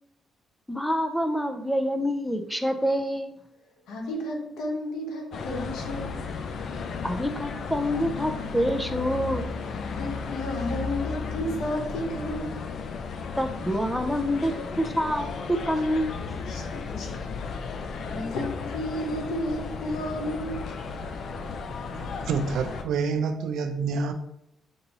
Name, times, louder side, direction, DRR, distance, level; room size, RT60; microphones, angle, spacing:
voice 1, 0.7-3.4 7.0-9.5 13.4-16.1, equal, 5° left, 0.5 m, -27 dB
voice 2, 3.9-6.2 10.0-12.6 16.5-17.1 18.1-20.8, left 1 dB, 90° left, 1.0 m, -32 dB
sound 1, 5.3-22.8, left 4 dB, 60° left, 0.4 m, -34 dB
voice 3, 21.9-24.1, right 5 dB, 80° right, 0.5 m, -28 dB
6.7 x 2.7 x 2.9 m
cardioid pair, 110°, 0 cm